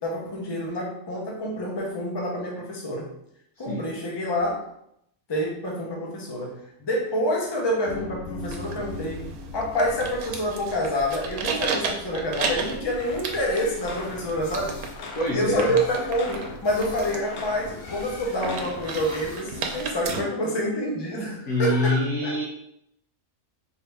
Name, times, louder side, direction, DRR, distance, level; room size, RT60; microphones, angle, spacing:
voice 1, 0.0-3.1 3.6-4.7 5.3-9.3 9.5-14.8 15.3-22.4, equal, 25° left, -2 dB, 0.7 m, -27 dB
sound 1, 7.9-13.1, left 2 dB, 55° left, 1.1 m, -41 dB
sound 2, 8.4-20.2, right 4 dB, 85° right, 1.1 m, -34 dB
sound 3, 13.0-19.4, left 3 dB, 90° left, 1.2 m, -40 dB
voice 2, 15.2-15.7 21.5-22.4, left 1 dB, 70° left, -1 dB, 1.1 m, -25 dB
4.1 x 2.7 x 3.4 m, 0.75 s
omnidirectional pair, 1.5 m